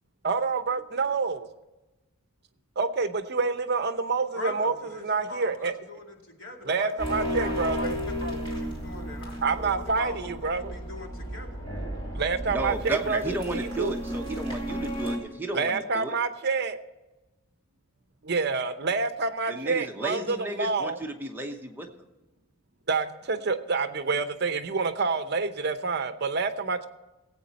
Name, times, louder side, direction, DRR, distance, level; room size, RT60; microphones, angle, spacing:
voice 1, 0.2-1.5 2.8-4.7 5.0-5.7 6.6-8.0 9.4-10.7 12.1-13.9 15.5-16.8 18.2-21.0 22.9-26.9, right 4 dB, 50° right, 9 dB, 0.8 m, -27 dB
voice 2, 4.4-11.6, left 2 dB, 65° left, 0 dB, 2.5 m, -41 dB
sound 1, 7.0-15.2, equal, 20° left, 2.8 m, -33 dB
voice 3, 12.5-16.1 19.5-21.9, right 2 dB, 10° right, 2 dB, 1.0 m, -33 dB
18.0 x 8.6 x 4.1 m, 1.1 s
head